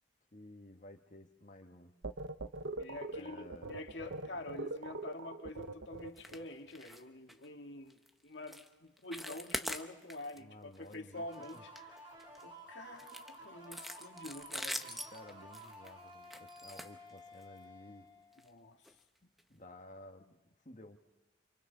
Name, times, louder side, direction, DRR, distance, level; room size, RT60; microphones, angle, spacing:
voice 1, 0.3-1.9 3.1-3.8 10.3-11.2 11.5-11.6 15.1-18.1 19.2-20.4 20.6-21.0, left 1 dB, 40° left, 4 dB, 1.5 m, -54 dB
sound 1, 2.0-6.5, right 2 dB, 85° right, 0.8 m, -42 dB
voice 2, 2.8-11.6 12.4-15.1 18.4-18.8, left 2 dB, 75° left, 3 dB, 1.8 m, -47 dB
sound 2, 6.2-6.4 6.7-7.0 7.3-7.5 7.9-8.1 8.5-8.7 9.0-10.4 10.7-10.9 11.3-12.4 13.0-17.6 18.3-18.5 18.8-18.9 19.4-19.5, equal, ahead, 0.8 m, -43 dB
sound 3, 11.1-18.7, right 1 dB, 25° right, 3.6 m, -53 dB
29.5 x 26.5 x 4.0 m, 1.1 s
head